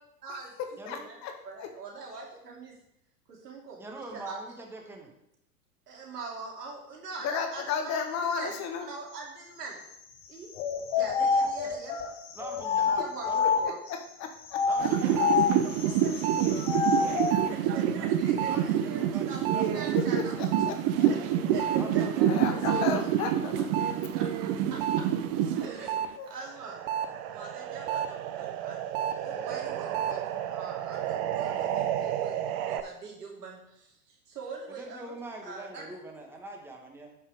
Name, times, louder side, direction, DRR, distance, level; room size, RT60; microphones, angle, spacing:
voice 1, 0.2-0.5 0.9-2.7 3.3-4.4 5.9-9.8 10.3-10.5 11.0-12.0 12.7-13.8 14.8-16.3 17.0-17.2 17.5-20.4 21.1-21.2 21.5-23.0 24.1-25.0 25.5-25.9 26.3-30.2 30.5-32.4 32.6-35.1 35.4-35.8, right 4 dB, 80° right, -2 dB, 3.1 m, -43 dB
voice 2, 0.9-1.3 1.6-1.7 7.2-8.9 13.6-14.6 19.9-21.1 22.3-23.7 26.2-26.3, left 6 dB, 35° left, 6 dB, 1.2 m, -33 dB
voice 3, 3.8-5.1 11.4-11.7 12.3-13.6 14.6-15.3 16.7-16.8 17.2-17.3 18.5-19.8 21.8-22.3 34.7-37.2, right 2 dB, 5° right, 1 dB, 1.3 m, -43 dB
sound 1, 10.5-13.9 14.5-17.4, left 5 dB, 15° left, 0.3 m, -28 dB
sound 2, 14.8-26.1 26.4-32.8, right 10 dB, 35° right, 0.7 m, -28 dB
12.0 x 5.8 x 3.5 m, 0.79 s
hypercardioid pair, 105°, 46 cm